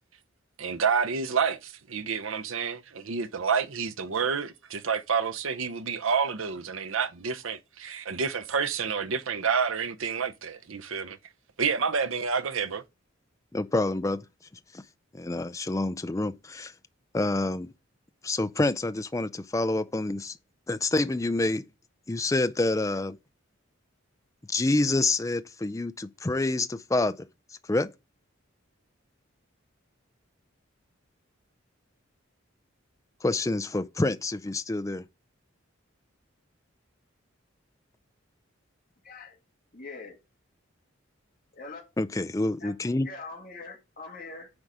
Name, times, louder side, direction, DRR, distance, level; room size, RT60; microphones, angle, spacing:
voice 1, 0.6-11.2 11.6-12.8, right 6 dB, 80° right, 0.8 m, -29 dB
voice 2, 13.5-14.2 14.7-14.8 15.1-16.7 17.1-17.7 18.2-20.4 20.7-21.6 22.1-23.2 24.5-27.2 27.7-27.9 33.2-35.0 42.0-43.1, left 2 dB, 15° left, 0.4 m, -27 dB
voice 3, 39.0-39.4 39.7-40.2 41.5-41.8 42.6-42.7 43.0-44.5, left 3 dB, 45° left, 2.0 m, -42 dB
9.7 x 3.9 x 4.9 m
head